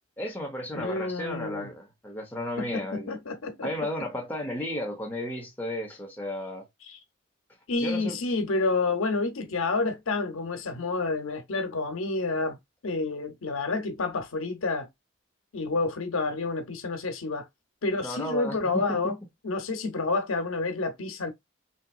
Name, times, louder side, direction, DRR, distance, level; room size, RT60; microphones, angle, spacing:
voice 1, 0.2-3.2 3.6-6.6 7.8-8.2 18.0-19.1, left 1 dB, 10° left, 0.9 m, -34 dB
voice 2, 0.7-1.7 2.6-3.7 6.9-7.0 7.7-14.9 15.5-17.5 17.8-19.2 19.4-21.3, left 3 dB, 85° left, 0.7 m, -29 dB
3.3 x 2.9 x 2.3 m
head